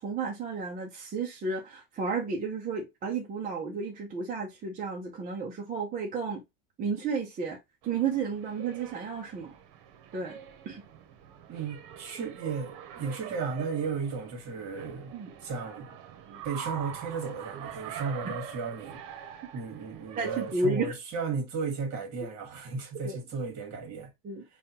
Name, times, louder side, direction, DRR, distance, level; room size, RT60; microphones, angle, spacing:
voice 1, 0.0-6.4 6.8-7.6 7.8-9.5 10.1-10.4 10.6-10.8 15.1-15.3 16.3-16.4 20.2-20.9 23.0-23.2 24.2-24.4, right 4 dB, 20° right, 0.4 m, -32 dB
sound 1, 7.8-20.5, right 8 dB, 60° right, 0.9 m, -44 dB
voice 2, 11.5-15.1 15.4-16.0 16.4-19.0 19.5-24.1, right 5 dB, 40° right, 1.5 m, -34 dB
5.4 x 2.3 x 2.8 m
cardioid pair, 155°, 44 cm